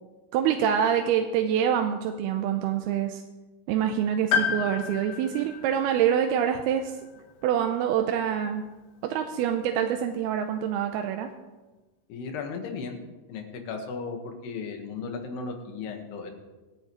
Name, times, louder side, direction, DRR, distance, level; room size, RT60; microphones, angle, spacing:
voice 1, 0.3-3.2 3.7-7.0 7.4-8.6 9.0-11.3, right 9 dB, 85° right, 5 dB, 2.6 m, -26 dB
Piano, 4.3-8.5 9.7-9.8, left 7 dB, 70° left, 2.5 m, -32 dB
voice 2, 12.1-13.0 13.3-16.3, left 4 dB, 90° left, 4 dB, 3.5 m, -35 dB
24.5 x 8.8 x 3.1 m, 1.2 s
omnidirectional pair, 4.5 m